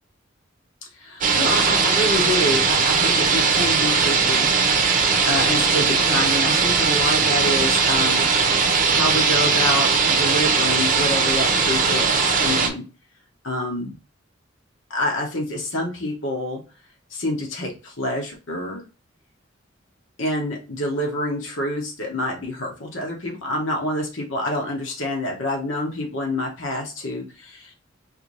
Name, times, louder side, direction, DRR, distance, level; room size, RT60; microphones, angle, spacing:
voice 1, 0.9-4.5 5.2-8.2 8.9-12.8 13.4-13.9 14.9-16.6 17.1-18.8 20.2-27.7, left 1 dB, 85° left, 0 dB, 1.5 m, -27 dB
sound 1, 1.2-12.7, right 5 dB, 45° right, 0.7 m, -19 dB
4.6 x 2.8 x 3.3 m, 0.32 s
head